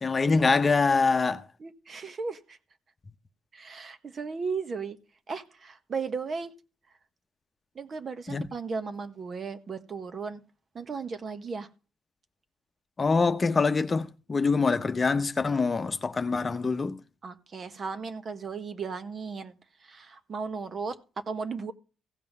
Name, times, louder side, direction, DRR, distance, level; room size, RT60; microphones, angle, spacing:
voice 1, 0.0-1.4 8.3-8.4 13.0-17.0, left 4 dB, 30° left, 0.9 m, -24 dB
voice 2, 1.6-2.6 3.5-5.0 5.3-6.5 7.7-10.4 10.7-11.7 17.2-19.6 19.8-21.0 21.3-21.7, right 5 dB, 45° right, 1.3 m, -35 dB
16.0 x 5.5 x 5.4 m
cardioid pair, 90°, 0 cm